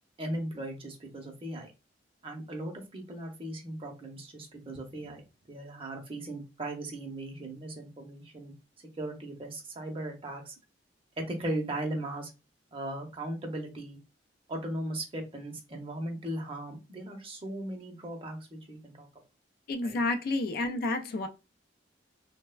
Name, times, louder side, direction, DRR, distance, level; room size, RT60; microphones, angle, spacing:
voice 1, 0.2-1.7 2.2-8.5 9.0-10.5 11.3-12.3 12.7-14.0 14.5-19.1 19.8-20.0, right 1 dB, 30° right, 0.6 m, -38 dB
voice 2, 19.7-21.3, left 2 dB, 55° left, 0.4 m, -30 dB
3.1 x 2.1 x 2.2 m
head